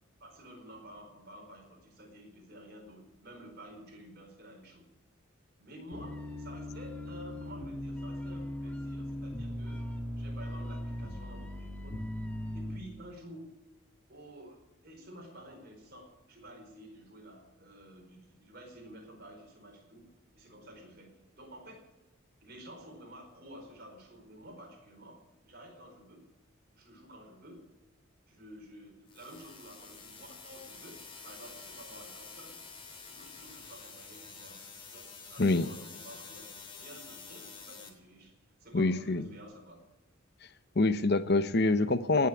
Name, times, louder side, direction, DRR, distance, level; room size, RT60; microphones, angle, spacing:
voice 1, 0.2-4.9 5.6-9.9 10.2-12.1 12.5-13.5 14.1-21.9 22.4-26.3 26.7-27.7 28.3-32.6 33.1-34.6 34.9-36.5 36.7-38.3 38.6-39.8 40.7-40.8, equal, 50° right, 2 dB, 4.7 m, -51 dB
sound 1, 5.9-12.8, left 1 dB, 5° left, 1.6 m, -39 dB
sound 2, 29.1-37.9, left 4 dB, 25° left, 3.0 m, -49 dB
voice 2, 35.4-35.7 38.7-39.3 40.8-42.3, left 2 dB, 50° left, 12 dB, 0.8 m, -26 dB
18.5 x 7.4 x 9.7 m, 1.0 s
head